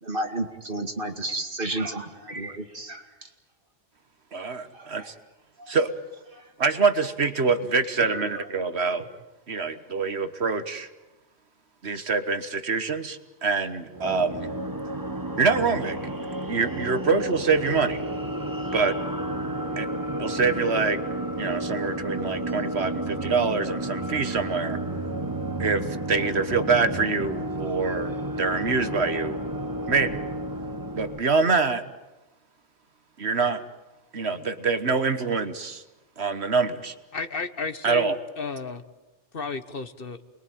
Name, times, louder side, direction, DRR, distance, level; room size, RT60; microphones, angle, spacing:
voice 1, 0.0-3.3 4.7-5.1 5.6-5.7 6.3-6.5 8.0-8.5, right 1 dB, 50° right, 5 dB, 2.5 m, -33 dB
voice 2, 4.3-5.1 5.7-5.9 6.6-9.0 9.5-10.9 11.8-14.5 15.4-16.0 16.5-18.0 18.7-19.0 19.8-19.9 20.2-21.0 21.4-24.8 25.6-29.4 29.9-30.2 31.0-31.8 33.2-33.6 34.1-35.8 36.2-36.9 37.8-38.2, right 4 dB, 65° right, 10 dB, 1.6 m, -25 dB
sound 1, 13.9-31.2, right 1 dB, 20° right, 1.3 m, -31 dB
voice 3, 37.1-38.8 39.3-40.2, left 4 dB, 55° left, 11 dB, 1.4 m, -33 dB
28.5 x 22.0 x 9.2 m, 1.1 s
omnidirectional pair, 1.2 m